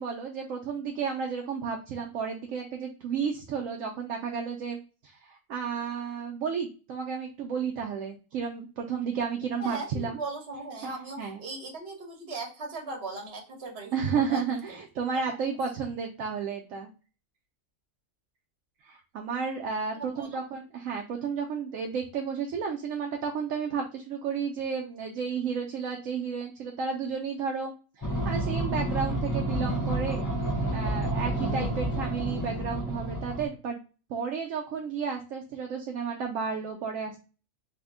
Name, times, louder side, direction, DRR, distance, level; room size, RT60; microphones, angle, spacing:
voice 1, 0.0-4.8 5.0-10.2 10.8-10.9 11.2-11.4 13.9-16.9 18.8-30.3 30.7-33.8 34.1-37.2, right 6 dB, 75° right, 2 dB, 0.9 m, -32 dB
voice 2, 9.6-14.6 15.1-15.4 19.9-20.4, right 3 dB, 50° right, 1 dB, 1.2 m, -39 dB
sound 1, 28.0-33.5, right 1 dB, 20° left, 0.5 m, -29 dB
3.3 x 2.1 x 3.5 m, 0.34 s
omnidirectional pair, 1.4 m